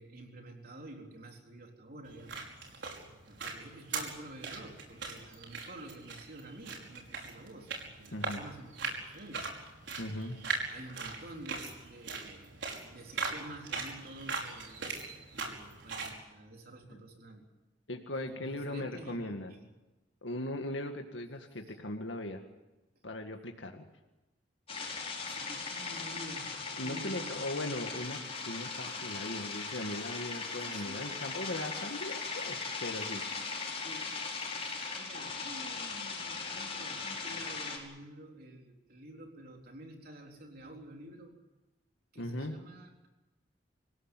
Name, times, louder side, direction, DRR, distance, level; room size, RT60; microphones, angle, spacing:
voice 1, 0.0-2.4 2.7-9.5 10.3-12.5 12.9-14.8 15.3-17.4 18.1-19.7 21.7-21.8 25.3-27.5 30.6-31.1 33.7-34.2 34.9-41.4 42.1-43.1, right 1 dB, 55° right, 2 dB, 3.8 m, -50 dB
sound 1, 2.0-16.2, right 4 dB, 75° right, 5.4 m, -40 dB
voice 2, 8.1-8.4 10.0-10.4 16.9-17.0 17.9-19.5 20.2-22.4 23.0-23.9 26.8-28.2 28.5-33.2 42.2-42.6, left 1 dB, 85° left, 4 dB, 2.0 m, -39 dB
sound 2, 24.7-37.8, left 4 dB, 35° left, 5.8 m, -39 dB
26.5 x 16.5 x 9.2 m, 1.0 s
head